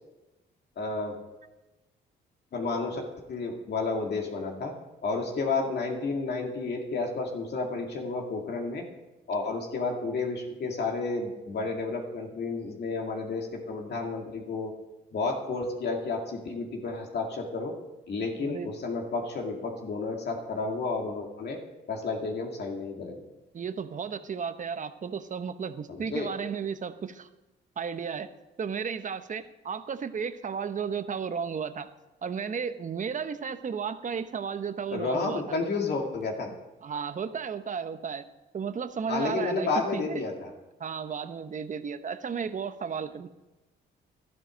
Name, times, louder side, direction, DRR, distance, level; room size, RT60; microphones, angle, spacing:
voice 1, 0.8-1.1 2.5-4.7 5.0-8.8 9.3-14.7 15.1-17.7 18.1-21.6 21.9-23.2 26.1-26.3 34.9-36.5 39.1-40.5, left 3 dB, 55° left, 1 dB, 2.3 m, -31 dB
voice 2, 18.4-18.7 23.5-27.3 27.8-28.3 28.6-31.9 32.2-35.6 36.4-38.3 38.5-40.2 40.8-43.3, right 6 dB, 40° right, 11 dB, 0.9 m, -34 dB
12.5 x 11.0 x 5.2 m, 1.0 s
cardioid pair, 90°, 20 cm